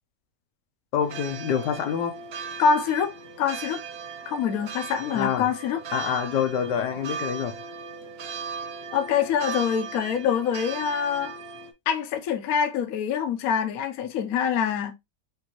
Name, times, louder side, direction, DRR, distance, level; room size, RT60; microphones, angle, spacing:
voice 1, 0.9-2.1 5.1-5.5 5.9-7.6, left 8 dB, 80° left, 1.4 m, -26 dB
sound 1, 1.0-11.7, right 5 dB, 65° right, 0.6 m, -37 dB
voice 2, 2.6-3.8 4.3-5.8 8.9-11.4 11.9-14.9, left 7 dB, 65° left, 1.1 m, -25 dB
5.2 x 2.7 x 2.9 m
omnidirectional pair, 1.8 m